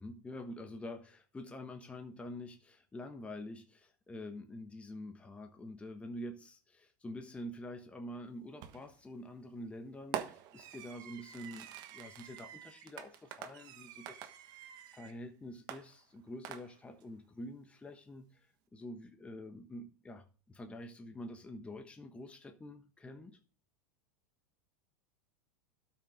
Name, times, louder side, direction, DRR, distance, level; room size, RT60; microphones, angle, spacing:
voice 1, 0.0-14.3 14.9-18.5 18.7-23.4, left 1 dB, 15° left, 1.2 m, -47 dB
Fireworks, 8.6-9.0 10.1-15.2 15.7-17.0, right 11 dB, 50° right, 1.3 m, -46 dB
12.5 x 5.8 x 3.6 m
hypercardioid pair, 105°, 9 cm